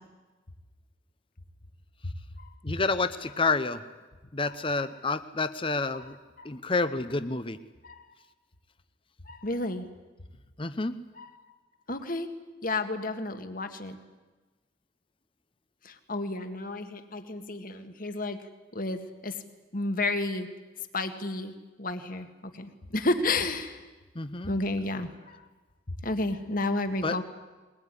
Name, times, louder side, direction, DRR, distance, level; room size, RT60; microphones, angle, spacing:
voice 1, 2.0-2.5 4.8-4.9 5.9-6.0 6.4-6.5 7.8-8.1 9.3-9.9 11.2-11.3 11.9-12.3 12.6-14.0 15.8-18.4 18.7-19.4 19.7-20.5 20.9-21.5 21.8-23.8 24.4-25.4 26.0-27.2, left 2 dB, 45° left, 8 dB, 1.9 m, -31 dB
voice 2, 2.6-3.8 4.3-6.1 6.4-7.6 10.6-10.9 24.1-24.6 27.0-27.2, left 3 dB, 30° left, 12 dB, 0.9 m, -29 dB
22.5 x 20.5 x 9.9 m, 1.2 s
head